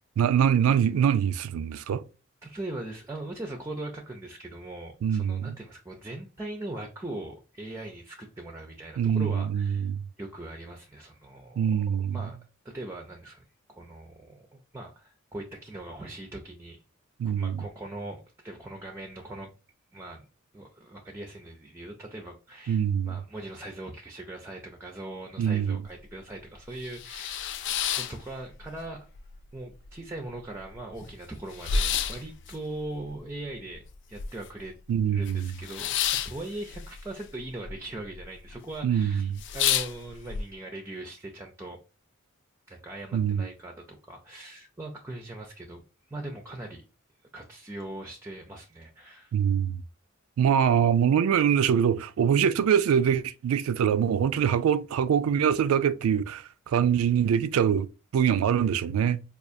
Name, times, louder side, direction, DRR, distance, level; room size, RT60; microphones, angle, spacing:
voice 1, 0.2-2.0 5.0-5.5 9.0-10.0 11.6-12.2 17.2-17.6 22.7-23.2 25.4-25.8 34.9-35.5 38.8-39.4 43.1-43.5 49.3-49.8 50.4-59.2, right 8 dB, 85° right, 0.3 m, -24 dB
voice 2, 2.4-9.9 10.2-11.7 12.1-12.4 12.6-16.8 17.2-19.5 19.9-20.3 20.5-29.1 29.5-34.7 35.1-36.0 36.2-41.8 42.7-45.8 46.1-46.9 47.3-49.3, right 2 dB, 15° right, 0.4 m, -40 dB
sound 1, 25.6-25.7 26.1-26.2 26.6-28.8 29.2-29.9 30.2-30.3 30.5-34.7 34.9-37.7 38.0-38.5 38.9-39.0 39.3-40.4, left 8 dB, 60° left, 0.3 m, -30 dB
4.5 x 2.4 x 2.5 m
head